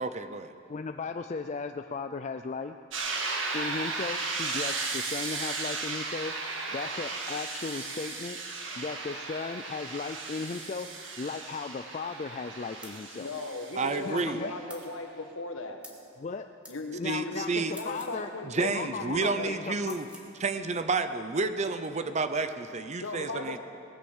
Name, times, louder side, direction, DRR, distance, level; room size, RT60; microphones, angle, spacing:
voice 1, 0.0-0.5 13.8-14.4 17.0-17.7 18.4-20.1 20.4-23.6, right 3 dB, 35° right, 10 dB, 0.6 m, -30 dB
voice 2, 0.7-2.7 3.5-10.9 11.2-13.3 14.0-14.5 16.2-16.5 17.0-18.3 18.6-19.9, left 4 dB, 35° left, 7 dB, 0.4 m, -36 dB
sound 1, 2.9-14.6, right 3 dB, 70° right, 1.8 m, -35 dB
sound 2, 12.8-13.0 14.7-14.9 15.8-16.0 16.6-16.8 17.7-18.2 19.8-20.3, equal, 5° right, 1.7 m, -48 dB
voice 3, 13.1-15.8 16.7-18.7 19.0-19.6 23.0-23.6, left 2 dB, 80° left, 5 dB, 1.4 m, -37 dB
19.0 x 10.0 x 7.2 m, 2.5 s
head